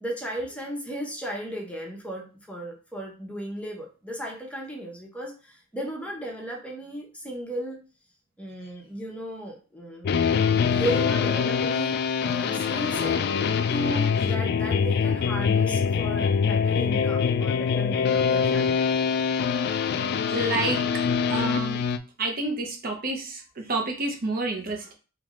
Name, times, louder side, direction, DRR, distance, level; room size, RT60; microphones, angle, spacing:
voice 1, 0.0-7.8 8.4-10.1 10.7-12.0 12.2-13.2 13.7-18.8 20.1-20.2, equal, 5° left, -1 dB, 0.8 m, -35 dB
sound 1, 10.0-22.0, left 6 dB, 50° left, 0.3 m, -24 dB
voice 2, 20.3-21.8 22.2-24.9, right 2 dB, 45° right, 2 dB, 0.7 m, -29 dB
3.4 x 3.1 x 3.7 m, 0.34 s
head